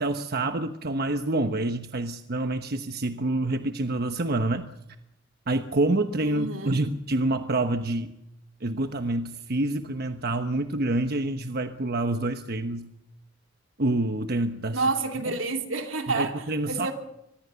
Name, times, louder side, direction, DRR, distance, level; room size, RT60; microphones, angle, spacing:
voice 1, 0.0-4.7 5.5-8.1 8.6-12.9 13.8-14.9 16.1-16.9, right 2 dB, 55° right, 1.1 m, -27 dB
voice 2, 6.2-6.8 14.7-16.9, right 3 dB, 85° right, 2.9 m, -29 dB
24.5 x 20.5 x 7.0 m
head